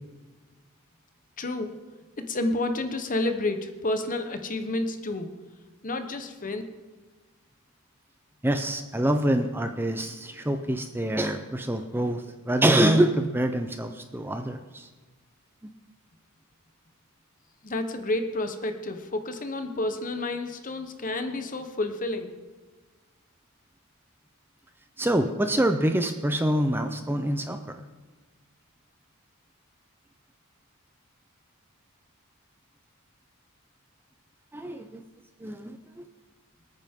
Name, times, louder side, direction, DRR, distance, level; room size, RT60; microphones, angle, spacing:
voice 1, 1.4-1.8 2.2-5.3 5.8-6.6 17.6-22.3, left 2 dB, 35° left, 7 dB, 1.1 m, -30 dB
voice 2, 8.4-14.9 25.0-27.8 34.5-35.0 35.4-36.1, right 1 dB, 10° right, 6 dB, 0.6 m, -25 dB
25.5 x 9.1 x 3.7 m, 1.3 s
head